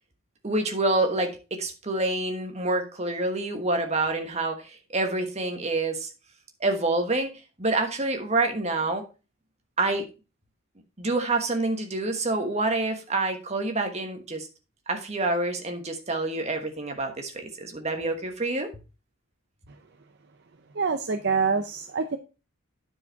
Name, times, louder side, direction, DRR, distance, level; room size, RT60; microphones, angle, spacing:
voice 1, 0.4-6.1 6.6-7.3 7.6-9.0 9.8-10.0 11.0-14.5 14.9-18.7, right 2 dB, 30° right, 1.3 m, -27 dB
voice 2, 20.8-22.2, right 5 dB, 50° right, 0.6 m, -26 dB
9.6 x 4.8 x 4.6 m
head